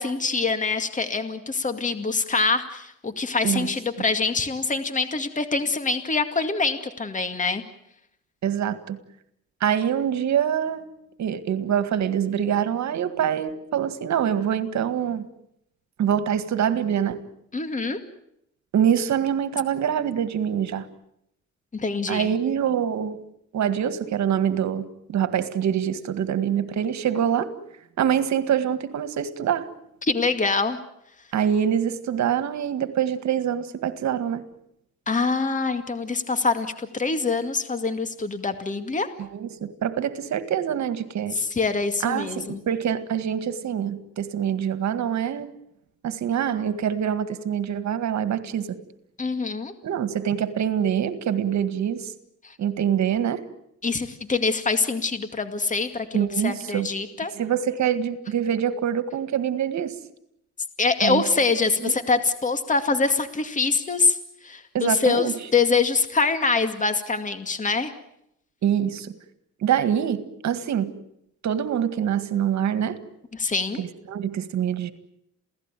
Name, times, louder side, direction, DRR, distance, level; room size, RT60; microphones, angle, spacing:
voice 1, 0.0-7.6 17.5-18.0 21.7-22.3 30.0-30.8 35.1-39.1 41.3-42.6 49.2-49.7 52.4-52.5 53.8-57.3 60.8-64.2 64.4-67.9 73.3-73.8, left 4 dB, 25° left, 9 dB, 2.2 m, -24 dB
voice 2, 8.4-9.0 9.6-10.9 11.2-15.3 16.0-17.2 18.7-20.9 22.1-23.2 23.5-27.5 28.0-29.7 31.3-34.4 39.2-41.3 42.0-45.5 46.0-48.8 49.8-52.1 52.6-53.5 56.1-56.9 57.3-60.0 61.0-61.2 61.8-62.0 64.7-65.3 68.6-69.1 69.6-70.9 71.4-73.0 73.8-74.9, right 9 dB, 65° right, 11 dB, 2.0 m, -25 dB
28.0 x 17.0 x 9.2 m, 0.78 s
cardioid pair, 90°, 30 cm